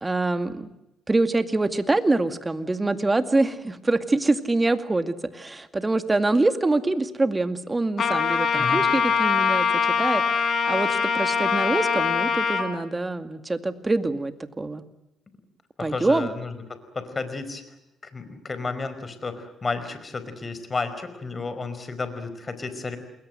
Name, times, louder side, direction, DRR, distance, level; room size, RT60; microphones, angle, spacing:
voice 1, 0.0-0.7 1.1-10.2 10.7-14.8 15.8-16.3, right 2 dB, 20° right, 9 dB, 2.2 m, -25 dB
Trumpet, 8.0-12.7, left 6 dB, 55° left, 4.7 m, -23 dB
voice 2, 8.5-8.9 15.8-16.6 16.9-17.6 18.0-23.0, left 4 dB, 30° left, 11 dB, 4.9 m, -32 dB
29.0 x 21.5 x 7.8 m, 0.89 s
cardioid pair, 90°, 0 cm